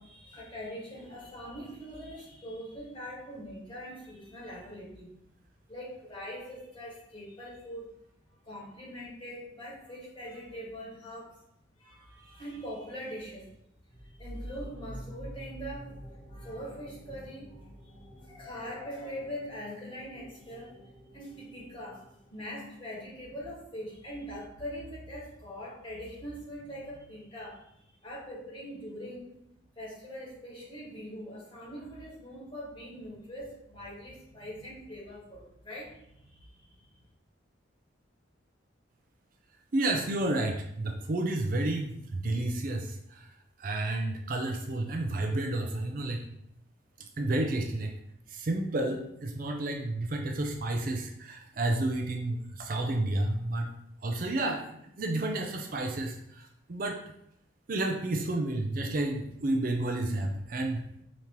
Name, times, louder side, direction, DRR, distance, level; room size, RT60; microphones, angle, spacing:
voice 1, 0.0-5.1 5.7-7.9 8.3-11.4 11.8-13.6 14.2-16.0 16.3-17.6 18.2-20.8 21.1-27.7 28.0-29.4 29.7-36.8, equal, 25° left, -7 dB, 1.6 m, -42 dB
sound 1, 13.9-23.3, equal, 50° left, 1.7 m, -48 dB
voice 2, 39.7-43.3 43.6-46.2 47.2-47.9 48.3-53.7 54.0-54.6 55.0-57.0 57.7-60.8, right 2 dB, 45° right, 3 dB, 0.4 m, -31 dB
5.1 x 2.9 x 3.0 m, 0.76 s
head